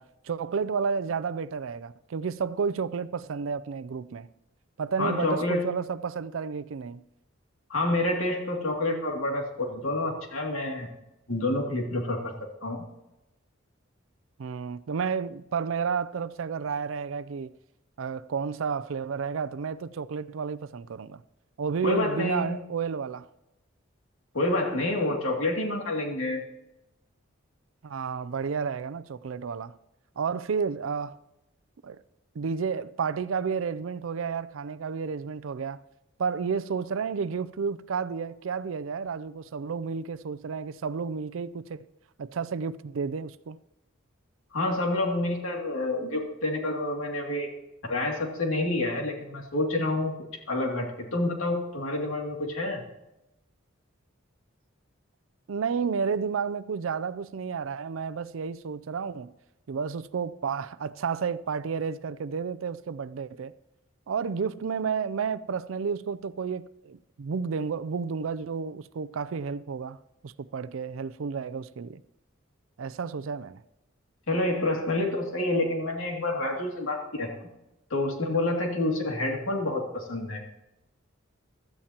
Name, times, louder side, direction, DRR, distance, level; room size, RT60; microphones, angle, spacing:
voice 1, 0.0-4.3 4.8-7.0 14.4-17.5 18.0-21.2 21.6-23.3 27.8-29.7 30.2-31.2 31.8-32.0 32.4-35.8 36.2-41.8 42.2-43.6 55.5-59.3 59.7-63.5 64.1-70.0 70.2-72.0 72.8-73.6, right 6 dB, 75° right, 0.4 m, -31 dB
voice 2, 5.0-5.6 7.7-10.9 11.3-12.3 12.6-12.8 21.8-22.6 24.3-26.4 44.5-47.5 47.8-50.1 50.5-50.9 51.1-52.8 74.3-77.3 77.9-80.4, left 2 dB, 85° left, 2.5 m, -28 dB
16.0 x 12.5 x 2.9 m
head